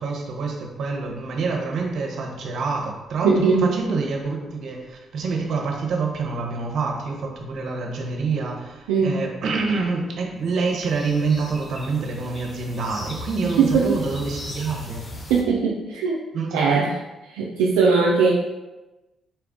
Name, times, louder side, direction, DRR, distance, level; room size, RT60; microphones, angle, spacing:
voice 1, 0.0-15.0 16.3-16.6, right 4 dB, 65° right, 0 dB, 0.8 m, -27 dB
voice 2, 3.2-3.8 8.9-9.2 13.6-14.0 15.3-16.2 16.5-16.9 17.3-18.3, right 5 dB, 85° right, -3 dB, 0.4 m, -19 dB
sound 1, 10.5-15.4, left 2 dB, 40° left, 0.7 m, -38 dB
4.3 x 2.3 x 3.6 m, 1.1 s
hypercardioid pair, 50°, 0 cm